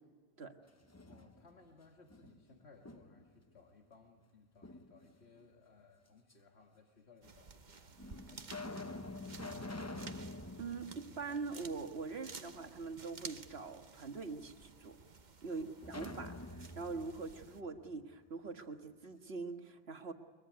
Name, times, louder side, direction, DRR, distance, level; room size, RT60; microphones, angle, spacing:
sound 1, 0.7-1.7 2.1-3.4 4.6-5.4 6.3-6.4 7.3-7.4 8.0-12.1 12.4-12.5 15.8-18.6, left 2 dB, 15° left, 0.7 m, -48 dB
voice 1, 1.0-8.0 8.3-9.8 15.5-15.7, left 3 dB, 80° left, 3 dB, 2.1 m, -63 dB
sound 2, 7.2-17.6, right 4 dB, 45° right, 1.2 m, -54 dB
voice 2, 10.6-15.0 15.4-20.1, right 4 dB, 70° right, 5 dB, 1.9 m, -43 dB
22.5 x 22.5 x 9.6 m, 1.5 s
omnidirectional pair, 1.1 m